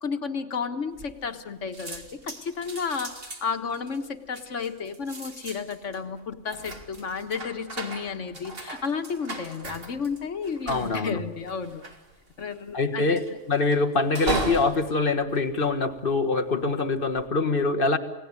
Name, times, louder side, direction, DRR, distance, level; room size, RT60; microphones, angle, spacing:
voice 1, 0.0-11.8 12.4-13.4, left 5 dB, 85° left, 7 dB, 1.8 m, -32 dB
sound 1, 1.0-1.5 1.7-16.3 16.9-17.3, right 2 dB, 55° right, 2.6 m, -37 dB
voice 2, 10.7-11.2 12.7-18.0, left 3 dB, 50° left, 6 dB, 1.6 m, -24 dB
28.5 x 18.0 x 9.7 m, 1.0 s
omnidirectional pair, 1.2 m